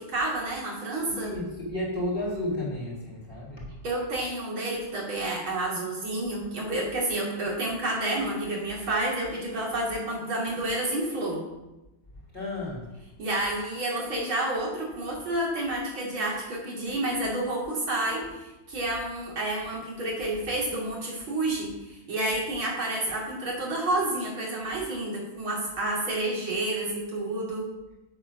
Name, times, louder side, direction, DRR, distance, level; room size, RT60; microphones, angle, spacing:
voice 1, 0.0-1.3 3.8-11.4 13.2-27.7, right 1 dB, 75° right, -4 dB, 3.8 m, -30 dB
voice 2, 1.0-3.8 12.3-12.9, left 1 dB, 25° left, -5 dB, 3.7 m, -32 dB
8.9 x 8.0 x 6.1 m, 1.0 s
omnidirectional pair, 2.3 m